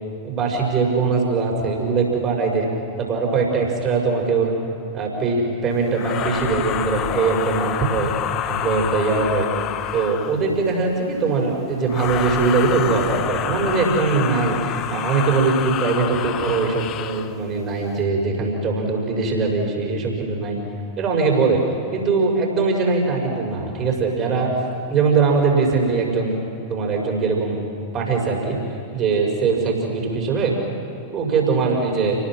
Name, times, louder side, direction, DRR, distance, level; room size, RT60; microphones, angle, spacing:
voice 1, 0.2-2.7 3.0-4.5 4.9-8.1 8.5-9.5 9.9-20.6 21.0-21.6 21.9-24.5 24.9-26.4 26.7-27.6 27.9-28.6 28.9-30.5 31.1-32.2, right 4 dB, 30° right, 0 dB, 5.7 m, -21 dB
sound 1, 5.9-10.5 11.9-17.3, left 10 dB, 35° left, 0.9 m, -28 dB
29.5 x 19.5 x 6.2 m, 2.5 s
figure-of-eight pair, 90°, 0 cm